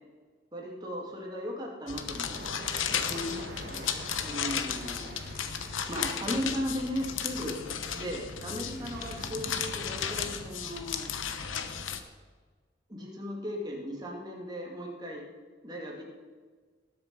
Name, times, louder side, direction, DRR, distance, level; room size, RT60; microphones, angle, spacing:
voice 1, 0.5-2.4 3.0-3.9 4.2-5.2 5.9-7.6 7.9-11.1 12.9-15.2 15.6-16.0, equal, 20° right, -1 dB, 2.4 m, -36 dB
sound 1, 1.9-12.0, left 7 dB, 85° left, 1.0 m, -34 dB
sound 2, 2.3-10.3, right 2 dB, 50° right, 1.7 m, -46 dB
19.5 x 6.9 x 5.4 m, 1.5 s
head